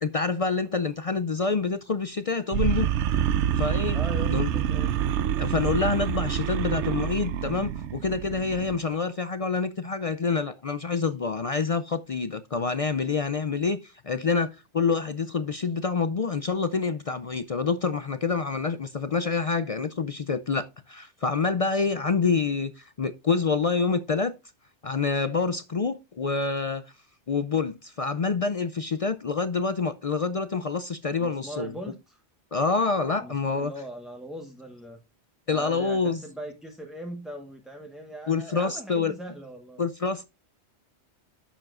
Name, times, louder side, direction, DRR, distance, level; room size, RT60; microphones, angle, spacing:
voice 1, 0.0-2.9 3.6-4.0 4.3-4.5 5.4-24.3 24.8-26.9 27.3-31.7 32.5-33.7 35.5-36.2 38.3-39.1 39.8-40.2, left 4 dB, 50° left, 0.4 m, -27 dB
sound 1, 2.5-8.8, right 10 dB, 80° right, 0.9 m, -27 dB
voice 2, 3.9-4.9 31.2-32.2 33.2-35.0 35.5-39.8, right 1 dB, ahead, 0.9 m, -40 dB
11.0 x 7.1 x 2.5 m
omnidirectional pair, 1.2 m